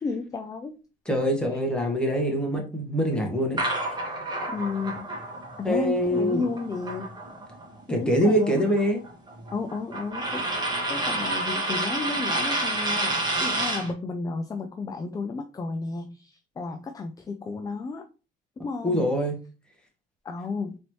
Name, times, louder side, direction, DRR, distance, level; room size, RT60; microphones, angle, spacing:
voice 1, 0.0-0.8 4.5-5.1 5.6-7.1 7.9-8.6 9.5-18.0 18.6-19.1 20.2-20.8, left 4 dB, 20° left, 7 dB, 0.4 m, -32 dB
voice 2, 1.1-3.6 5.6-6.4 7.9-9.0 18.8-19.4, equal, 5° left, 0 dB, 1.3 m, -24 dB
sound 1, 3.6-7.6 7.9-13.9, right 2 dB, 25° right, 1.5 m, -29 dB
4.0 x 3.2 x 3.0 m, 0.34 s
cardioid pair, 110°, 17 cm